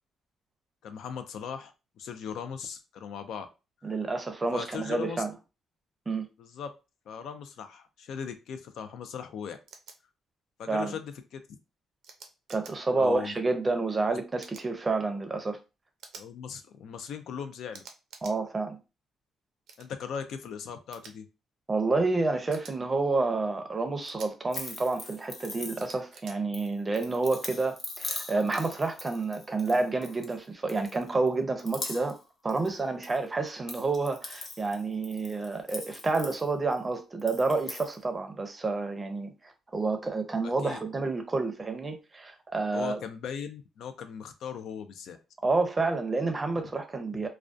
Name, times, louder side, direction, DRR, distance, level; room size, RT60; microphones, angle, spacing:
voice 1, 0.8-3.5 4.5-5.2 6.4-6.7 7.1-9.6 10.6-11.4 13.0-13.3 16.2-17.8 19.8-21.3 40.4-40.8 42.7-45.2 46.5-46.7 47.1-47.2, left 7 dB, 75° left, 0.3 m, -39 dB
voice 2, 3.8-5.3 6.1-6.3 10.7-11.0 12.5-15.6 18.2-18.8 21.7-32.2 32.4-43.0 45.4-47.3, right 3 dB, 25° right, 0.5 m, -29 dB
sound 1, 9.7-9.9 12.0-12.7 14.4-14.7 16.0-16.3 17.7-18.4 19.7-19.9 20.9-21.1 22.5-22.7 24.0-24.3 25.8-26.3, right 5 dB, 75° right, 0.4 m, -48 dB
sound 2, 24.5-26.1 26.5-30.4 30.7-31.3 31.6-33.2 33.5-36.8 37.2-37.9, left 2 dB, 40° left, 0.6 m, -41 dB
2.3 x 2.1 x 2.5 m
cardioid pair, 90°, 0 cm